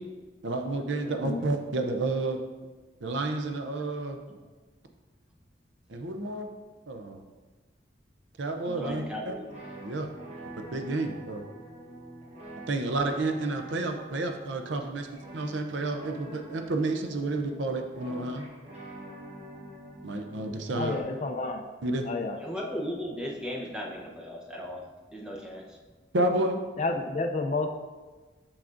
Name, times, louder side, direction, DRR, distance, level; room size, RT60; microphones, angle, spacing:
voice 1, 0.4-2.4 3.0-4.2 5.9-6.5 6.9-7.2 8.4-9.3 9.8-10.1 10.6-11.4 12.7-18.4 20.0-21.0 21.8-22.1 26.1-26.6, right 2 dB, 80° right, 5 dB, 0.6 m, -30 dB
voice 2, 8.7-9.4 22.4-24.9 25.1-25.8, equal, 5° right, -3 dB, 0.7 m, -36 dB
sound 1, 9.4-21.0, right 1 dB, 35° right, 1.0 m, -46 dB
voice 3, 20.8-21.6 22.0-22.4 26.8-27.7, left 3 dB, 40° left, 4 dB, 0.4 m, -30 dB
6.5 x 5.9 x 2.5 m, 1.3 s
head